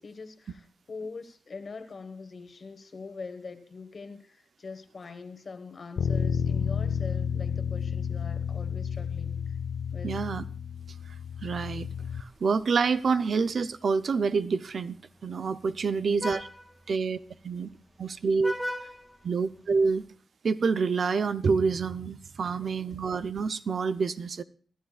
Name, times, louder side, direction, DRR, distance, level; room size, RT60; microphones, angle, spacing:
voice 1, 0.0-9.5 9.9-10.2 15.8-16.4 22.6-23.2, left 4 dB, 55° left, 1.3 m, -43 dB
Bass guitar, 6.0-12.2, left 7 dB, 85° left, 0.6 m, -31 dB
voice 2, 10.0-10.4 11.4-11.9 12.4-15.0 15.2-16.5 16.9-17.2 17.4-17.7 18.0-18.5 19.2-20.0 20.4-24.4, right 5 dB, 65° right, 0.6 m, -27 dB
Vehicle horn car horn honking, 11.9-20.0, equal, 5° left, 1.8 m, -43 dB
25.0 x 12.0 x 2.4 m
cardioid pair, 80°, 0 cm